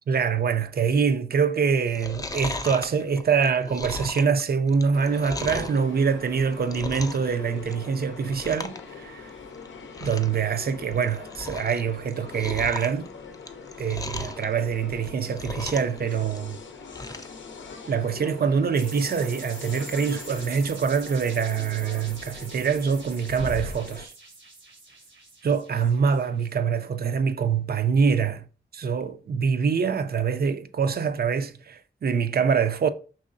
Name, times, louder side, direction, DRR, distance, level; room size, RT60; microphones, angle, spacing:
voice 1, 0.1-9.3 10.0-13.1 13.8-16.6 17.9-24.1 25.4-28.5 28.7-32.9, right 6 dB, 55° right, 0.4 m, -25 dB
Chewing mastication, 1.8-5.8 6.3-7.3 7.6-7.9 8.3-8.8 9.1-9.2 9.6-9.7 9.9-10.4 10.8-11.8 12.1-14.5 14.9-16.0 16.3-17.3 17.7-17.8, left 2 dB, 20° left, 0.4 m, -36 dB
sound 1, 4.9-24.1, left 4 dB, 85° left, 0.6 m, -42 dB
sound 2, 18.7-26.5, right 3 dB, 80° right, 1.0 m, -45 dB
5.4 x 3.1 x 2.5 m
wide cardioid pair, 70°, 19 cm